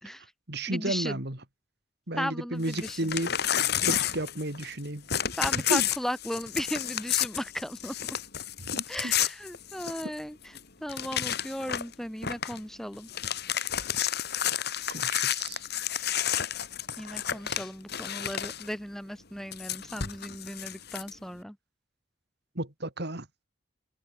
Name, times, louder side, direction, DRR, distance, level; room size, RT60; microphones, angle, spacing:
voice 1, 0.0-1.4 2.1-3.3 3.8-5.1 5.7-5.9 8.6-9.1 9.9-10.0 14.9-15.6 22.5-23.3, right 1 dB, 55° right, 3.3 m, -33 dB
voice 2, 0.7-1.2 2.2-3.0 5.4-8.2 8.9-10.4 10.8-13.1 17.0-21.6, equal, ahead, 2.3 m, -36 dB
Crumpling crinkling / Tearing, 2.6-4.8 5.1-10.2 10.5-10.6 10.9-11.9 12.2-12.6 12.9-18.7 19.5-21.1, left 10 dB, 55° left, 2.5 m, -31 dB
head